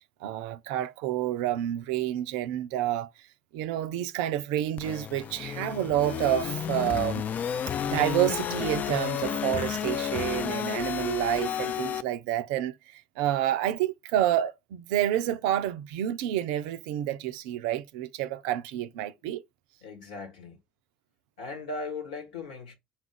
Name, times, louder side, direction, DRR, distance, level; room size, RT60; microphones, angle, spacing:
voice 1, 0.2-3.1 3.5-19.4, right 12 dB, 65° right, 0.4 m, -29 dB
sound 1, 4.8-12.0, left 9 dB, 40° left, 0.4 m, -31 dB
voice 2, 19.8-20.6 21.4-22.7, left 3 dB, 75° left, 1.5 m, -38 dB
4.5 x 2.4 x 3.5 m
figure-of-eight pair, 55°, 4 cm